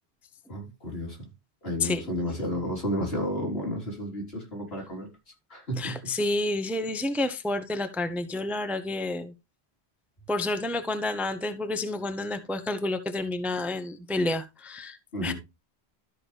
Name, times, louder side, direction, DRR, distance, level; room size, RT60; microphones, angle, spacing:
voice 1, 0.5-1.2 1.6-5.1 5.5-6.0 15.1-15.3, equal, 70° left, 4.0 m, -32 dB
voice 2, 5.8-9.3 10.3-15.0 15.2-15.3, left 2 dB, ahead, 0.8 m, -29 dB
13.0 x 5.8 x 3.3 m
omnidirectional pair, 1.1 m